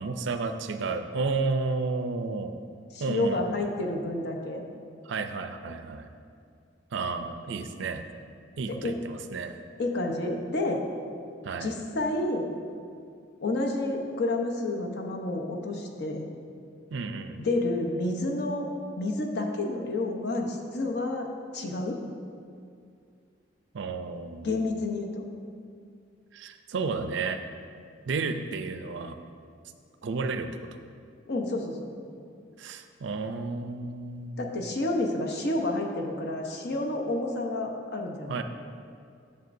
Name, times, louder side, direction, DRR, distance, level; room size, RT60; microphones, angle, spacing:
voice 1, 0.0-2.5 3.0-3.6 5.0-6.1 6.9-8.1 8.6-9.6 11.4-11.7 16.9-17.4 23.7-24.6 26.3-27.4 28.1-29.2 30.0-30.5 32.6-34.6 38.3-38.4, right 4 dB, 65° right, 8 dB, 0.4 m, -32 dB
voice 2, 2.9-4.6 8.7-8.9 9.8-10.8 11.6-12.5 13.4-16.3 17.4-18.7 19.0-21.3 21.5-22.0 24.4-25.2 31.3-31.8 34.4-38.4, left 2 dB, 60° left, 2 dB, 0.8 m, -29 dB
9.3 x 6.8 x 2.6 m, 2.3 s
head